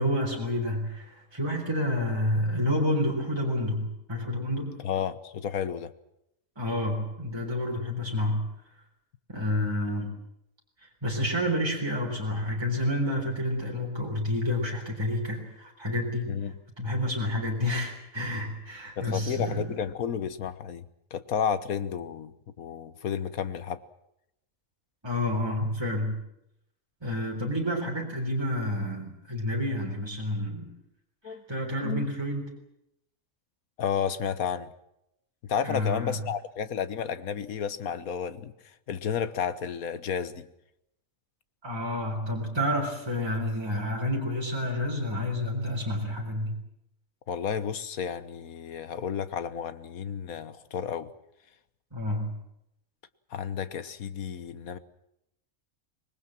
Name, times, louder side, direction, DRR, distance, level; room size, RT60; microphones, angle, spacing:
voice 1, 0.0-4.8 6.6-8.5 9.3-10.1 10.8-16.3 16.8-19.8 25.0-26.2 27.0-30.7 31.2-32.5 35.6-36.2 41.6-46.6 51.9-52.4, left 1 dB, 20° right, -1 dB, 3.9 m, -29 dB
voice 2, 4.8-5.9 16.3-16.5 19.0-23.8 31.2-31.4 31.8-32.1 33.8-34.7 35.5-38.5 38.9-40.5 47.3-51.1 53.3-54.8, left 7 dB, 85° left, 13 dB, 1.6 m, -32 dB
25.5 x 20.5 x 7.6 m, 0.80 s
omnidirectional pair, 1.5 m